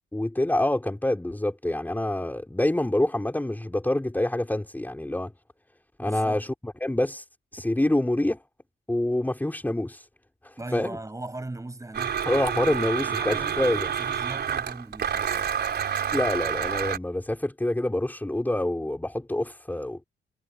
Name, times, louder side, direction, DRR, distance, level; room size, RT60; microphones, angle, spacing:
voice 1, 0.1-5.3 6.0-7.2 7.5-8.4 8.9-10.1 10.4-11.0 12.3-13.9 16.1-20.0, left 1 dB, 10° left, 4.4 m, -26 dB
voice 2, 6.0-6.4 10.6-12.2 12.6-12.7 13.1-15.5, right 2 dB, 15° right, 7.7 m, -39 dB
Domestic sounds home sounds, 11.9-17.0, right 8 dB, 55° right, 5.2 m, -28 dB
cardioid pair, 90°, 20 cm